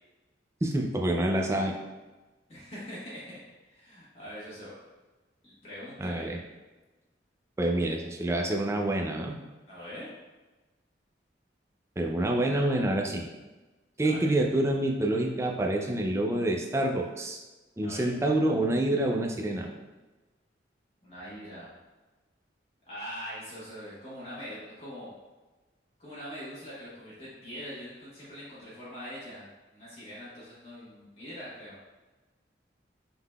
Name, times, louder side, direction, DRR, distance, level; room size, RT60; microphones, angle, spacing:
voice 1, 0.6-1.7 6.0-6.4 7.6-9.3 12.0-13.3 14.0-17.4 17.8-19.7, right 1 dB, 15° right, 1 dB, 0.4 m, -27 dB
voice 2, 2.5-4.8 5.4-6.3 9.7-10.1 14.0-14.3 17.8-18.1 21.0-21.7 22.8-25.1 26.0-29.5 29.7-31.8, equal, 35° left, -10 dB, 1.2 m, -43 dB
5.3 x 3.8 x 2.3 m, 1.2 s
head